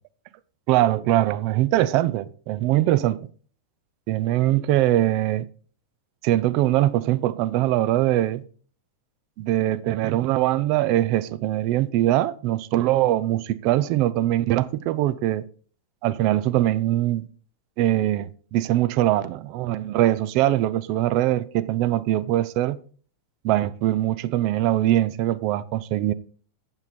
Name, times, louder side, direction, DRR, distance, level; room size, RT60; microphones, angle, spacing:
voice 1, 0.7-3.3 4.1-5.5 6.2-8.4 9.4-15.4 16.0-17.3 17.8-22.8 23.4-26.1, right 14 dB, 45° right, 0.5 m, -22 dB
8.2 x 6.9 x 4.3 m
figure-of-eight pair, 90°, 0 cm